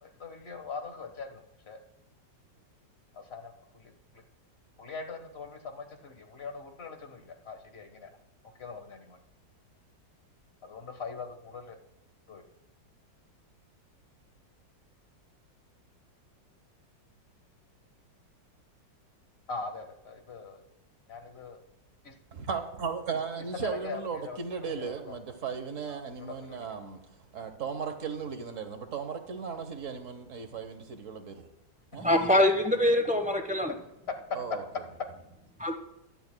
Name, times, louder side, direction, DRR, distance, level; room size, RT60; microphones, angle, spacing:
voice 1, 0.0-1.8 3.1-4.2 4.8-8.1 8.6-9.2 10.6-11.8 12.3-12.4 19.5-20.6 21.1-21.6 22.0-22.1 23.5-25.2 25.9-26.6, left 4 dB, 35° left, 1.5 m, -42 dB
voice 2, 22.3-31.5 31.9-32.1 34.3-34.6, right 6 dB, 50° right, 1.3 m, -36 dB
voice 3, 32.0-33.7 35.6-35.8, left 1 dB, 5° right, 0.8 m, -24 dB
23.0 x 9.9 x 2.3 m
omnidirectional pair, 2.0 m